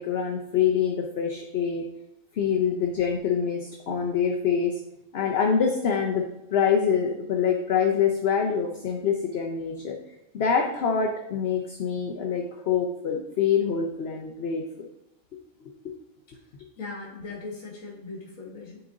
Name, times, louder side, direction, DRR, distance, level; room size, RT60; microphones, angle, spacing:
voice 1, 0.0-1.8 2.3-4.8 5.1-10.0 10.3-14.6, left 7 dB, 55° left, 2 dB, 0.9 m, -25 dB
voice 2, 16.8-18.8, left 3 dB, 85° left, -6 dB, 1.8 m, -39 dB
10.0 x 3.7 x 3.8 m, 0.89 s
omnidirectional pair, 1.4 m